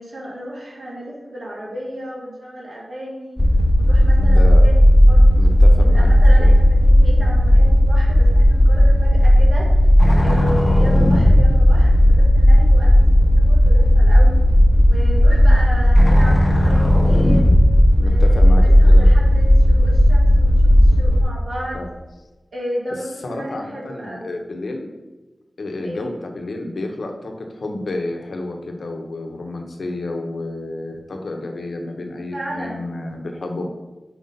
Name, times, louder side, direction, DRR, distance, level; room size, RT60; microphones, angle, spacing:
voice 1, 0.0-3.4 3.8-4.7 5.1-9.7 10.2-14.4 14.8-17.5 17.9-21.8 22.5-24.4 25.8-26.1 32.3-32.9, equal, 75° right, -4 dB, 1.8 m, -33 dB
sound 1, 3.4-21.2, equal, 15° left, 1.0 m, -13 dB
voice 2, 4.2-4.6 5.4-6.1 6.4-6.5 10.4-10.6 18.0-19.1 21.7-21.9 23.2-24.9 25.6-33.7, left 2 dB, 80° left, 3 dB, 0.8 m, -30 dB
4.9 x 3.9 x 5.2 m, 1.1 s
wide cardioid pair, 90°, 0 cm